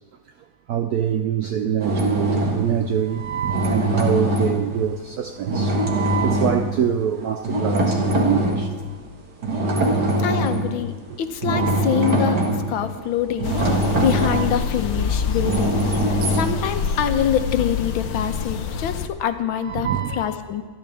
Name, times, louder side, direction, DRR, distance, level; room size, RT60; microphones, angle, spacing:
voice 1, 0.7-8.7 11.5-11.8 14.3-14.6 16.5-16.7 19.6-20.3, right 9 dB, 80° right, 0.8 m, -25 dB
sound 1, 1.8-2.8 3.4-5.0 5.5-6.7 7.4-8.7 9.4-10.7 11.2-17.0, right 1 dB, 55° right, 2.3 m, -22 dB
voice 2, 10.2-12.4 12.7-20.6, left 9 dB, 75° left, 1.7 m, -25 dB
sound 2, 13.4-19.1, left 6 dB, 60° left, 1.1 m, -27 dB
26.5 x 11.5 x 3.5 m
omnidirectional pair, 2.2 m